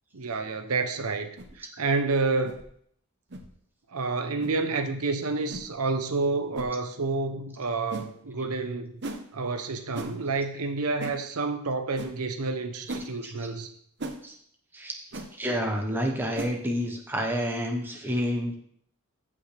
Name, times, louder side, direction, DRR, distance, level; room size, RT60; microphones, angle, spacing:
voice 1, 0.1-2.6 3.9-8.9 9.3-13.7, right 3 dB, 85° right, 0.8 m, -29 dB
sound 1, 1.4-1.5 2.4-2.6 3.3-3.5 4.4-4.5 5.5-5.7 6.5-6.7 7.9-8.1 9.0-9.2 9.9-10.1 11.0-11.2 12.0-12.1 12.9-13.1 14.0-14.2 15.1-15.3 16.3-16.6, right 2 dB, 50° right, 0.9 m, -36 dB
voice 2, 14.7-18.5, equal, 10° right, 1.0 m, -30 dB
14.5 x 5.6 x 3.4 m
head